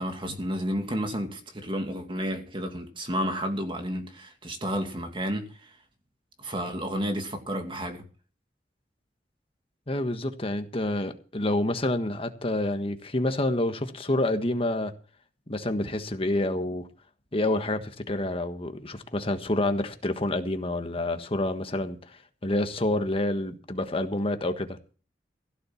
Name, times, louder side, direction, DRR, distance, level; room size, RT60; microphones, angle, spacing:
voice 1, 0.0-5.7 6.4-8.0, equal, 30° right, 2.5 m, -31 dB
voice 2, 9.9-14.9 15.5-16.9 17.3-24.8, left 1 dB, 30° left, 1.4 m, -28 dB
16.0 x 7.3 x 7.1 m
head